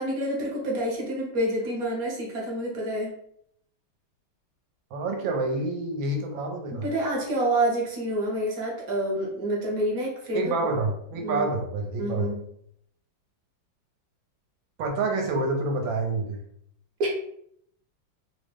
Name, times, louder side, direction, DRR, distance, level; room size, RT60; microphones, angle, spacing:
voice 1, 0.0-3.1 6.8-10.7 11.2-11.5 12.0-12.4 17.0-17.1, right 1 dB, 55° right, -2 dB, 1.2 m, -28 dB
voice 2, 4.9-6.8 10.3-12.3 14.8-16.4, right 3 dB, 80° right, 2 dB, 1.4 m, -28 dB
3.5 x 2.0 x 3.3 m, 0.70 s
omnidirectional pair, 2.2 m